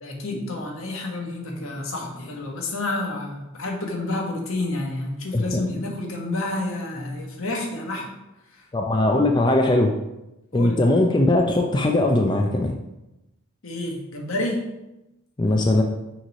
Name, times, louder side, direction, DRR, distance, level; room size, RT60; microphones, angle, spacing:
voice 1, 0.0-8.1 10.5-10.8 13.6-14.6, left 2 dB, 70° left, 0 dB, 1.3 m, -29 dB
voice 2, 8.7-9.9 10.5-12.8 15.4-15.8, left 2 dB, 20° left, 3 dB, 0.4 m, -20 dB
6.3 x 3.2 x 5.3 m, 0.93 s
head